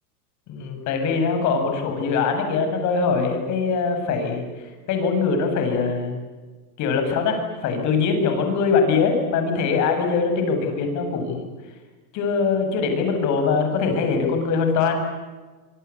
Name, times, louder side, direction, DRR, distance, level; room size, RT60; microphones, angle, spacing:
voice 1, 0.5-4.4 4.9-6.2 6.8-11.5 12.1-15.0, left 5 dB, 40° left, 5 dB, 7.4 m, -22 dB
26.5 x 24.5 x 8.6 m, 1.3 s
supercardioid pair, 140°, 44 cm